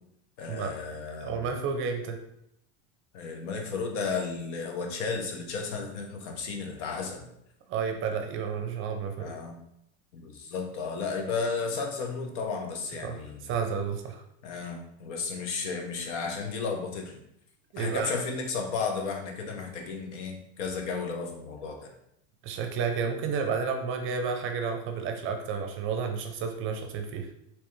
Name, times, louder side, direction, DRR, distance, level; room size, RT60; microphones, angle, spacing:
voice 1, 0.4-1.5 3.1-7.3 9.2-9.6 10.1-13.5 14.4-17.2 17.8-21.9, left 4 dB, 80° left, 3 dB, 0.9 m, -33 dB
voice 2, 1.2-2.2 7.7-9.3 13.0-14.2 17.7-18.1 22.4-27.3, right 6 dB, 35° right, 4 dB, 0.5 m, -31 dB
3.2 x 3.0 x 3.1 m, 0.76 s
supercardioid pair, 130°, 35 cm